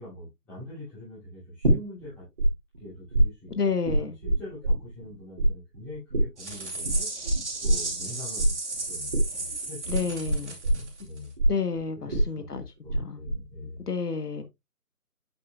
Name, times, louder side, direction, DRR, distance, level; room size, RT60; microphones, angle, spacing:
voice 1, 0.0-2.2 2.8-7.1 7.6-8.6 8.9-11.3 12.0-13.8, left 1 dB, 5° left, 2.9 m, -43 dB
sound 1, 1.6-2.5 2.7-5.1 5.4-13.0 13.3-13.8, right 1 dB, 30° right, 2.6 m, -24 dB
voice 2, 3.5-4.2 9.9-10.6 11.5-12.6 13.0-13.2 13.9-14.4, left 5 dB, 75° left, 1.2 m, -30 dB
sound 2, 6.4-11.2, right 3 dB, 45° right, 2.7 m, -35 dB
8.5 x 6.3 x 2.3 m
figure-of-eight pair, 170°, 47 cm